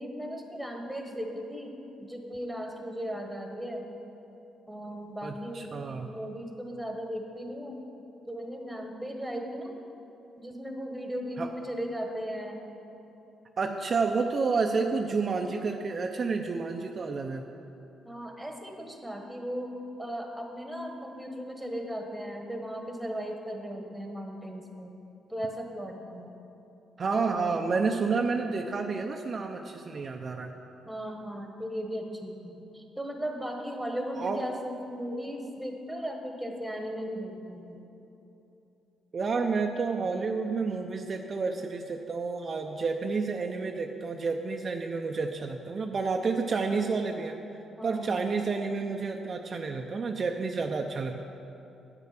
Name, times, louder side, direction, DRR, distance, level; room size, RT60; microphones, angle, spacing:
voice 1, 0.0-3.9 4.7-5.8 6.0-7.8 8.3-9.7 10.4-12.6 18.0-25.0 25.3-26.3 27.2-27.5 30.9-37.8 47.8-48.2, equal, ahead, 2 dB, 1.3 m, -37 dB
voice 2, 5.2-6.1 11.4-11.5 13.6-17.4 27.0-30.5 34.2-34.4 39.1-47.4 47.8-51.2, right 4 dB, 45° right, 3 dB, 0.5 m, -30 dB
9.0 x 7.2 x 5.9 m, 3.0 s
cardioid pair, 90°, 0 cm